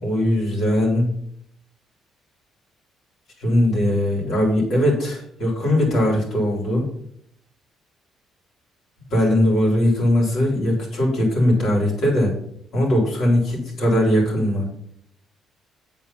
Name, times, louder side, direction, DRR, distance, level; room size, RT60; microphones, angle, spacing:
voice 1, 0.0-1.1 3.4-6.9 9.1-12.3 12.7-14.7, left 1 dB, 65° left, -2 dB, 3.7 m, -20 dB
8.1 x 4.5 x 5.7 m, 0.70 s
cardioid pair, 90°, 0 cm